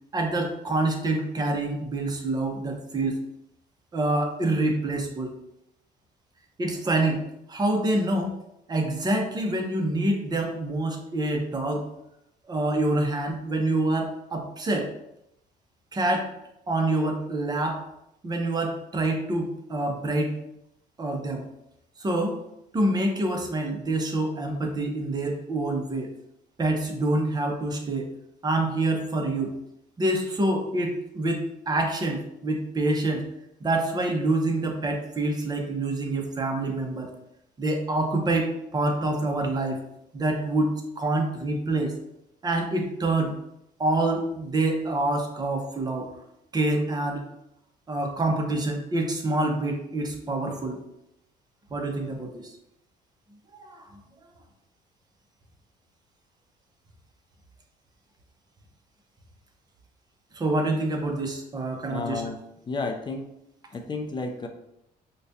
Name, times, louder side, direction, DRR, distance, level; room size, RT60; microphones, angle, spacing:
voice 1, 0.1-3.2 3.9-5.3 6.6-8.4 8.7-11.8 12.5-14.9 15.9-16.3 16.7-17.8 18.2-20.4 21.0-21.5 22.0-22.4 22.7-26.1 26.6-28.1 28.4-29.6 30.0-33.3 33.6-37.1 37.6-39.8 40.1-41.9 42.4-43.3 43.8-46.1 46.5-47.2 47.9-50.8 51.7-52.5 53.5-53.9 60.3-62.2, right 2 dB, 25° right, 2 dB, 0.7 m, -26 dB
voice 2, 61.9-62.4 62.7-63.3 63.7-64.5, left 3 dB, 25° left, 5 dB, 0.5 m, -31 dB
4.7 x 2.2 x 2.7 m, 0.83 s
cardioid pair, 110°, 17 cm